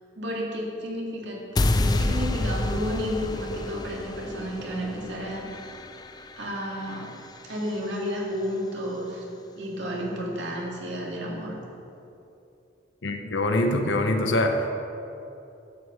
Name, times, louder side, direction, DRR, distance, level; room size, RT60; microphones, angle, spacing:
voice 1, 0.2-1.4 1.7-5.5 6.4-7.1 7.5-9.3 9.5-11.6, equal, 75° right, -3 dB, 2.4 m, -31 dB
sound 1, 1.6-7.7, left 2 dB, 20° left, 0.4 m, -29 dB
voice 2, 13.0-14.7, left 1 dB, 80° left, 4 dB, 0.9 m, -24 dB
11.5 x 5.3 x 7.7 m, 2.8 s
head